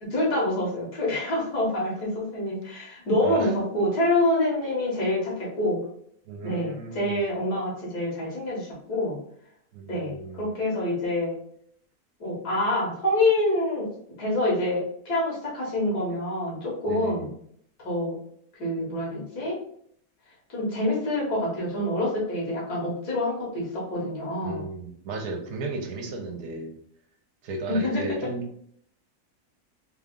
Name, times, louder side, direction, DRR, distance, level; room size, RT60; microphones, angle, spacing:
voice 1, 0.0-5.8 6.4-9.2 9.9-11.4 12.2-13.9 14.2-17.3 17.8-18.2 18.6-19.6 20.5-24.7 27.7-28.0, left 1 dB, 85° left, -4 dB, 2.1 m, -26 dB
voice 2, 3.2-3.5 6.3-7.2 9.7-10.5 16.9-17.3 24.4-26.8 27.4-28.6, right 3 dB, 75° right, 3 dB, 1.2 m, -34 dB
4.0 x 2.3 x 3.7 m, 0.67 s
omnidirectional pair, 1.6 m